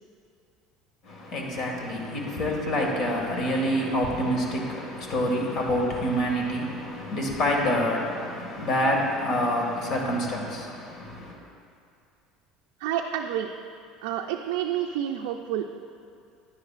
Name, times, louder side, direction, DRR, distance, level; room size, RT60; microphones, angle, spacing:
voice 1, 1.0-11.4, equal, 55° left, 0 dB, 1.8 m, -27 dB
voice 2, 12.8-13.5 14.0-15.6, right 10 dB, 80° right, 2 dB, 0.4 m, -29 dB
10.5 x 9.6 x 2.5 m, 2.4 s
supercardioid pair, 90°, 0 cm